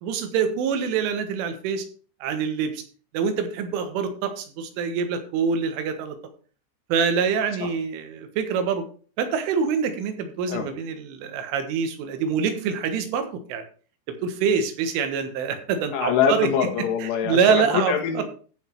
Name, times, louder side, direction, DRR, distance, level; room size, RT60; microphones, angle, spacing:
voice 1, 0.0-1.9 2.2-2.8 3.1-6.2 6.9-8.8 9.2-13.6 14.1-16.5 17.0-18.2, right 6 dB, 80° right, 7 dB, 3.8 m, -25 dB
voice 2, 15.9-18.2, left 7 dB, 75° left, 3 dB, 4.1 m, -24 dB
14.5 x 5.8 x 4.6 m, 0.40 s
omnidirectional pair, 5.7 m